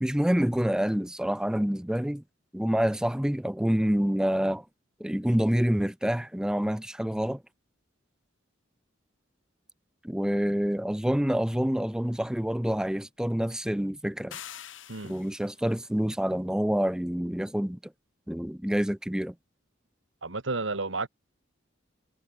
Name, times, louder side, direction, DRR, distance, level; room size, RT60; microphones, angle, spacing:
voice 1, 0.0-2.2 2.5-4.6 5.0-7.4 10.0-14.4 15.0-17.8 18.3-19.3, equal, 5° right, 0.4 m, -27 dB
sound 1, 14.3-15.6, left 10 dB, 80° left, 2.6 m, -44 dB
voice 2, 20.2-21.1, right 3 dB, 75° right, 2.1 m, -31 dB
head